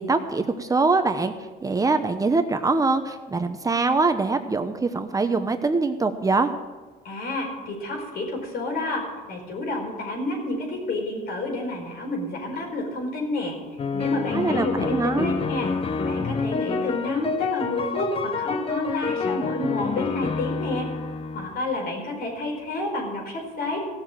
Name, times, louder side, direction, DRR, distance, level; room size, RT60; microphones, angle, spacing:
voice 1, 0.0-1.3 1.6-6.5 14.3-15.3, right 3 dB, 20° right, 8 dB, 0.8 m, -23 dB
voice 2, 7.0-13.6 13.9-15.7 16.0-20.9 21.3-23.8, left 2 dB, 65° left, 1 dB, 4.8 m, -30 dB
sound 1, 13.8-21.6, left 5 dB, 35° left, 0.8 m, -28 dB
16.0 x 7.0 x 7.5 m, 1.3 s
cardioid pair, 110°, 17 cm